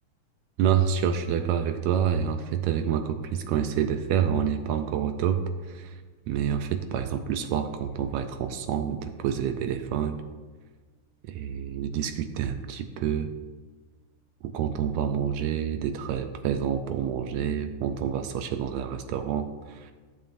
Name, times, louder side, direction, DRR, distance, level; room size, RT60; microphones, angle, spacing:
voice 1, 0.6-6.0 6.3-10.2 11.3-13.3 14.4-19.9, right 8 dB, 80° right, 7 dB, 1.7 m, -28 dB
14.0 x 7.2 x 2.6 m, 1.4 s
omnidirectional pair, 3.3 m